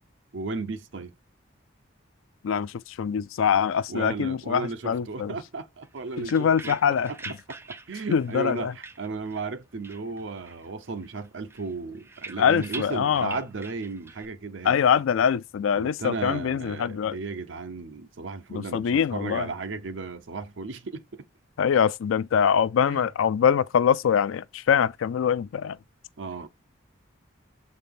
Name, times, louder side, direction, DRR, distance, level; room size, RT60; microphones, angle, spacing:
voice 1, 0.3-1.1 3.9-7.0 7.9-14.8 15.8-21.2 22.9-23.1 26.2-26.5, right 4 dB, 70° right, 0.7 m, -35 dB
voice 2, 2.4-5.3 6.2-7.1 8.1-8.7 12.4-13.4 14.6-17.2 18.5-19.5 21.6-25.8, left 7 dB, 90° left, 0.4 m, -24 dB
sound 1, 5.8-9.6 9.8-10.7 11.0-14.2, right 3 dB, 10° right, 0.4 m, -44 dB
6.8 x 3.9 x 3.6 m
head